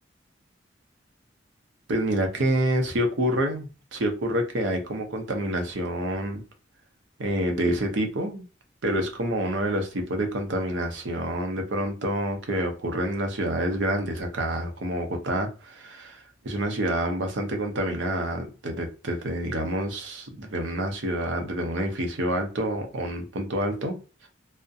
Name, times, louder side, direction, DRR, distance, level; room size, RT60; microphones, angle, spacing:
voice 1, 1.9-6.4 7.2-8.5 8.8-24.0 24.2-24.3, right 1 dB, 75° right, 0.6 m, -28 dB
2.6 x 2.0 x 2.3 m
head